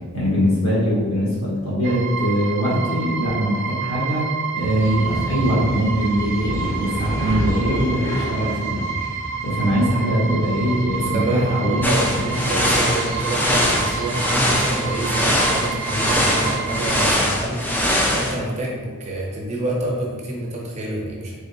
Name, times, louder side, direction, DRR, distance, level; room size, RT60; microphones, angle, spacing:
voice 1, 0.1-8.8 9.4-11.9 12.1-12.3, equal, 65° left, -7 dB, 1.5 m, -22 dB
sound 1, 1.8-17.1, right 6 dB, 55° right, 0.3 m, -30 dB
sound 2, 4.6-18.4, equal, 40° left, 1.0 m, -31 dB
voice 2, 11.0-21.3, right 1 dB, 30° right, -3 dB, 0.7 m, -27 dB
sound 3, 11.8-18.3, equal, 10° left, 0.4 m, -22 dB
3.7 x 3.4 x 2.7 m, 1.4 s
head